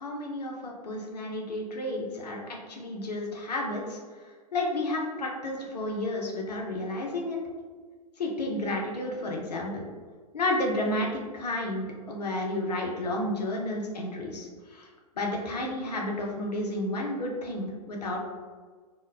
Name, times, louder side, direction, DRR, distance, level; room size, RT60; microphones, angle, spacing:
voice 1, 0.0-4.0 4.5-7.4 8.2-9.8 10.3-14.9 15.2-18.2, left 1 dB, 80° left, -1 dB, 0.5 m, -31 dB
3.0 x 2.1 x 2.3 m, 1.5 s
figure-of-eight pair, 105°, 20 cm